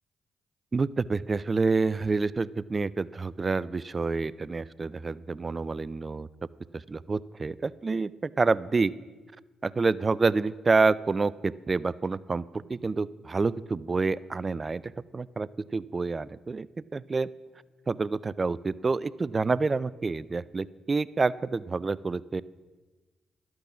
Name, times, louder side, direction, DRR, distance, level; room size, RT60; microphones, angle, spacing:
voice 1, 0.7-6.3 6.7-8.9 9.6-16.7 16.9-17.3 17.9-22.4, right 4 dB, 35° right, 20 dB, 0.3 m, -28 dB
12.0 x 6.2 x 7.0 m, 1.3 s
hypercardioid pair, 50°, 0 cm